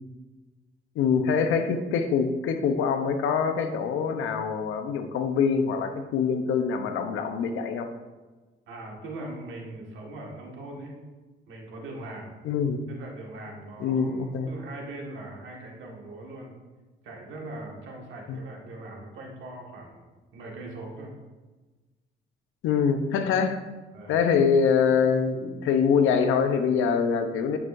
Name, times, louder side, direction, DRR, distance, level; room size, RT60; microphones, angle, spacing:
voice 1, 1.0-7.9 12.4-12.8 13.8-14.5 18.3-18.4 22.6-23.6 24.1-27.6, left 6 dB, 90° left, 7 dB, 0.8 m, -24 dB
voice 2, 8.7-10.9 11.5-12.3 12.9-16.5 17.0-20.0 20.3-21.1 23.9-24.1, right 2 dB, 75° right, -1 dB, 1.8 m, -40 dB
9.4 x 6.2 x 2.6 m, 1.2 s
cardioid pair, 90°, 20 cm